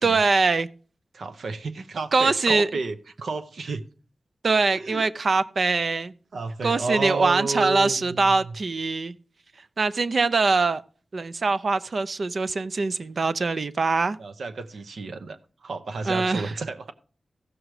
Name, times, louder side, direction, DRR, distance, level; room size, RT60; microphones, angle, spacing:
voice 1, 0.0-0.7 2.1-2.7 4.4-6.1 6.6-9.2 9.8-10.8 11.1-14.2 16.1-16.5, right 3 dB, 65° right, 0.5 m, -23 dB
voice 2, 1.1-3.0 3.2-3.8 4.7-5.1 6.3-8.6 14.2-16.9, right 3 dB, 90° right, 0.8 m, -31 dB
14.5 x 6.3 x 4.8 m
cardioid pair, 60°, 0 cm